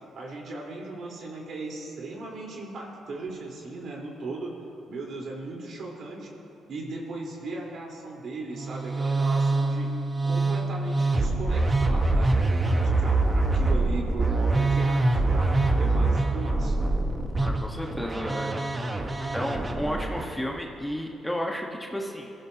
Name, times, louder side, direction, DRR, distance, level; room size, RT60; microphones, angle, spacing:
voice 1, 0.2-4.5 4.9-6.3 6.7-9.9 10.2-15.5 15.8-16.8, right 2 dB, 60° right, -3 dB, 3.9 m, -37 dB
Musical instrument, 8.5-20.3, right 2 dB, 25° right, 1.3 m, -24 dB
voice 2, 17.4-18.7 19.3-22.3, equal, 5° left, 0 dB, 1.3 m, -32 dB
23.0 x 15.5 x 2.9 m, 2.8 s
cardioid pair, 90°, 0 cm